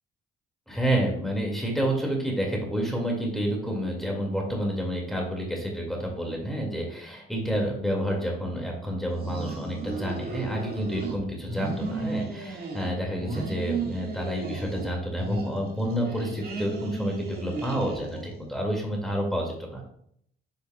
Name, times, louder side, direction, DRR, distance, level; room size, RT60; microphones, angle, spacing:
voice 1, 0.7-19.8, equal, ahead, 0 dB, 2.2 m, -29 dB
sound 1, 9.1-11.2 11.4-12.9 13.2-14.9 15.2-18.4, right 3 dB, 50° right, 1.8 m, -35 dB
8.5 x 5.2 x 2.3 m, 0.68 s
cardioid pair, 90°, 20 cm